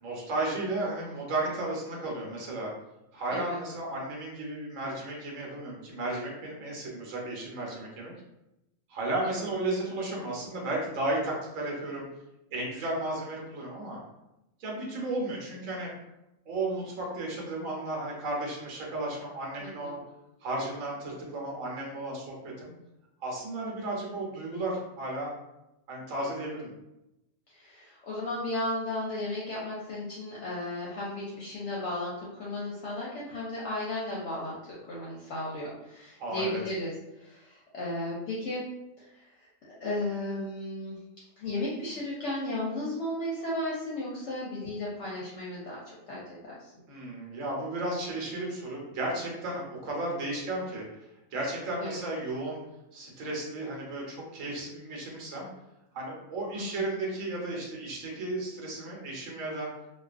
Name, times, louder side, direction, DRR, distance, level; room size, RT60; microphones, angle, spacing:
voice 1, 0.0-2.7 3.1-8.1 8.9-12.1 12.5-14.0 14.6-15.9 16.5-20.0 20.4-22.7 23.2-25.3 25.9-26.7 36.2-36.6 46.9-50.8 51.3-52.6 52.9-55.5 55.9-59.7, right 2 dB, 70° right, -2 dB, 1.1 m, -34 dB
voice 2, 19.6-19.9 27.5-38.7 39.0-39.1 39.8-41.0 41.4-46.7 51.8-52.1 56.5-56.9, left 1 dB, 65° left, -6 dB, 0.8 m, -35 dB
2.4 x 2.3 x 2.4 m, 0.91 s
omnidirectional pair, 1.4 m